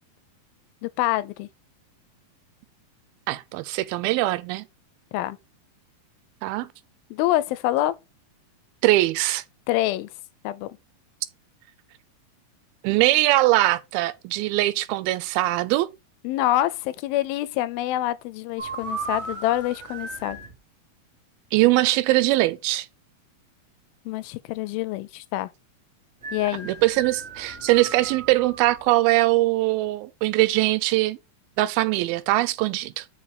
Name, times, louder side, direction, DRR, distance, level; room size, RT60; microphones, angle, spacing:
voice 1, 0.8-1.5 5.1-5.4 7.1-8.0 9.7-10.1 10.4-10.7 16.2-20.4 24.1-25.5 26.3-26.7, left 15 dB, 85° left, 2.4 m, -26 dB
voice 2, 3.3-4.6 6.4-6.7 8.8-9.4 12.8-15.9 21.5-22.9 26.7-31.2 31.6-33.1, right 18 dB, 90° right, 2.5 m, -21 dB
sound 1, 18.6-20.6 26.2-28.9, right 3 dB, 45° right, 0.8 m, -36 dB
5.4 x 4.8 x 5.0 m
omnidirectional pair, 4.2 m